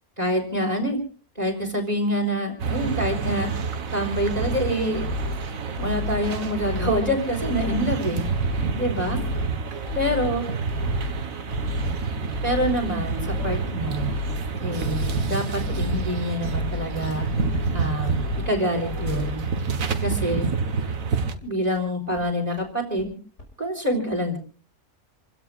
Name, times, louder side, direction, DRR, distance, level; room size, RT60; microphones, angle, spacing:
voice 1, 0.2-1.0 1.4-3.5 3.9-5.0 5.8-8.2 8.7-9.2 9.9-10.4 12.4-14.1 14.6-17.3 17.7-18.2 18.5-19.5 20.0-20.5 21.4-23.2 23.6-24.4, equal, 25° right, 3 dB, 4.1 m, -26 dB
sound 1, 2.6-21.3, right 5 dB, 60° right, 1.7 m, -28 dB
sound 2, 4.1-4.6 4.9-5.4 5.8-6.2 6.6-7.0 7.4-7.8 8.2-8.7 9.0-9.5 9.9-10.3 10.7-11.1 11.5-11.9 12.3-12.8 13.2-13.6 14.0-14.4 14.8-15.2 15.6-16.0 16.4-16.9 17.3-17.7 18.1-18.5 18.9-19.3 19.7-19.8 20.1-20.2 20.5-20.6 20.9-21.0 21.3-21.4 21.8-21.9 22.2-22.3 22.6-22.7 23.0-23.1 23.4-23.5, left 4 dB, 50° left, 6.1 m, -31 dB
28.5 x 17.0 x 2.4 m, 0.41 s
omnidirectional pair, 1.6 m